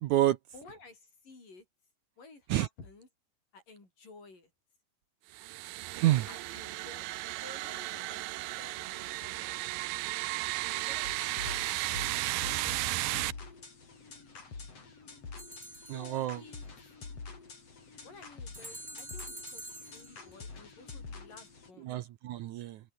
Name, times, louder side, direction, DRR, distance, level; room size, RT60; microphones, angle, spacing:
voice 1, 0.0-0.4 2.5-2.7 6.0-6.3 15.9-16.4 21.9-22.8, right 14 dB, 70° right, 2.0 m, -28 dB
voice 2, 0.5-1.7 2.2-3.1 3.5-4.5 6.3-7.1 7.4-9.6 10.7-12.5 13.1-13.5 15.7-16.7 18.0-21.9, left 3 dB, 65° left, 9.5 m, -54 dB
sound 1, 5.3-13.3, right 19 dB, 90° right, 2.5 m, -35 dB
sound 2, 11.0-21.7, left 4 dB, 45° left, 5.7 m, -46 dB
sound 3, 15.4-16.4 18.5-20.3, right 1 dB, 10° right, 7.0 m, -46 dB
open air
omnidirectional pair, 4.1 m